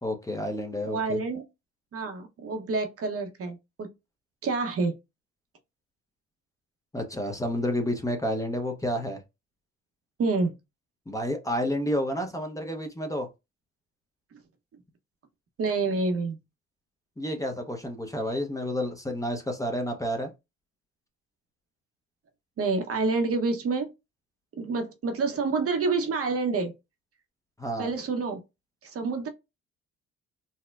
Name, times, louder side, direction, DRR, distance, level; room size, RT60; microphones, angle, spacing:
voice 1, 0.0-1.2 6.9-9.2 11.1-13.3 17.2-20.3 27.6-27.9, equal, 10° left, 0.7 m, -30 dB
voice 2, 0.9-1.4 1.9-3.9 4.4-5.0 10.2-10.5 15.6-16.4 22.6-23.9 24.6-26.7 27.8-28.4 28.8-29.3, right 4 dB, 50° right, 0.8 m, -28 dB
4.2 x 2.1 x 2.3 m
cardioid pair, 90°, 30 cm